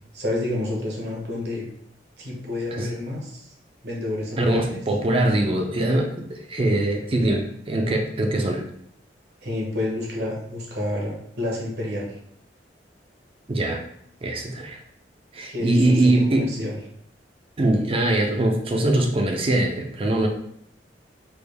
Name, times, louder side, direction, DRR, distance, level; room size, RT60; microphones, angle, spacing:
voice 1, 0.1-1.6 2.2-3.5 3.8-4.8 9.4-12.2 15.5-16.8, left 1 dB, 70° right, -2 dB, 1.0 m, -29 dB
voice 2, 4.4-8.6 13.5-13.8 14.2-14.8 15.3-16.5 17.6-20.3, right 1 dB, 30° right, 2 dB, 0.4 m, -22 dB
3.4 x 2.3 x 3.3 m, 0.69 s
head